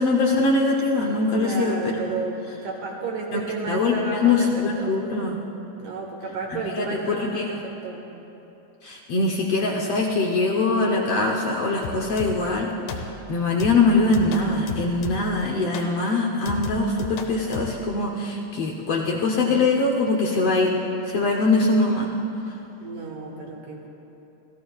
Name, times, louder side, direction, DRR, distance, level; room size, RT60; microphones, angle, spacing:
voice 1, 0.0-2.0 3.3-3.4 3.7-5.4 6.5-7.5 8.8-20.7 21.1-22.1, left 3 dB, 65° left, -1 dB, 1.6 m, -22 dB
voice 2, 1.4-5.0 5.8-8.0 22.8-23.9, right 3 dB, 80° right, -1 dB, 3.3 m, -32 dB
sound 1, 11.8-12.6 12.9-13.3 13.6-15.4 15.7-16.0 16.5-17.8, left 4 dB, 90° left, 2.5 m, -35 dB
29.5 x 14.0 x 2.4 m, 3.0 s
omnidirectional pair, 3.7 m